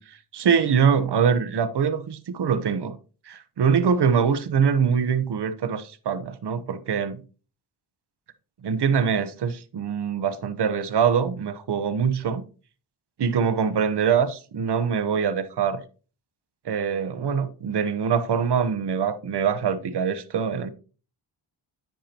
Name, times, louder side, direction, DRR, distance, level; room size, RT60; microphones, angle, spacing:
voice 1, 0.0-2.9 3.3-7.2 8.6-12.4 13.2-15.8 16.6-20.7, right 7 dB, 55° right, 1.0 m, -23 dB
10.5 x 7.7 x 2.9 m
cardioid pair, 85°, 48 cm